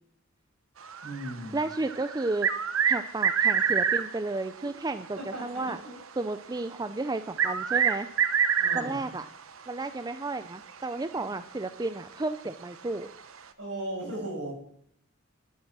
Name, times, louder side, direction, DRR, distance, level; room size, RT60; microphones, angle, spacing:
sound 1, 0.8-4.2 6.6-6.7 7.4-9.1 10.7-10.8 11.2-11.3 13.0-13.1, right 7 dB, 85° right, 1.0 m, -26 dB
voice 1, 1.0-1.6 5.2-6.0 8.6-9.1 11.2-11.3 13.6-14.5, right 1 dB, 70° right, -1 dB, 7.2 m, -37 dB
voice 2, 1.5-2.5 2.9-5.8 6.2-8.1 8.7-9.3 9.7-13.1, right 2 dB, 20° right, 11 dB, 0.5 m, -32 dB
11.5 x 11.5 x 6.1 m, 0.68 s
head